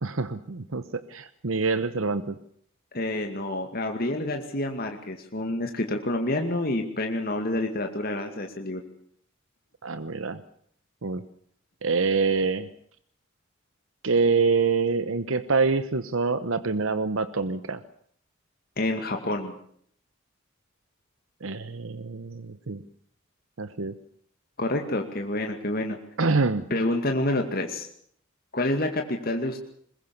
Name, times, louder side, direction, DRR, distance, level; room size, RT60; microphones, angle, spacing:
voice 1, 0.0-2.4 9.8-10.4 11.0-11.2 11.8-12.7 14.0-17.8 21.4-22.8 23.6-23.9 26.2-26.6, right 4 dB, 80° right, 12 dB, 1.0 m, -26 dB
voice 2, 2.9-8.8 18.8-19.5 24.6-26.0 26.7-27.9 28.5-29.6, left 1 dB, 45° left, 4 dB, 2.3 m, -28 dB
21.5 x 21.5 x 7.1 m, 0.64 s
head